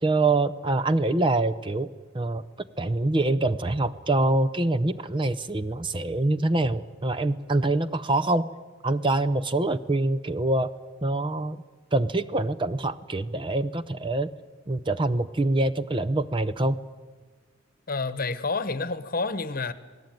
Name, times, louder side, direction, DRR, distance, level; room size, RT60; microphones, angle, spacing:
voice 1, 0.0-1.9 2.1-2.4 2.8-8.5 8.8-10.7 11.0-11.6 11.9-14.3 14.7-16.8, right 2 dB, 25° right, 0.6 m, -25 dB
voice 2, 17.9-19.7, left 3 dB, 45° left, 1.1 m, -29 dB
27.5 x 18.0 x 9.2 m
head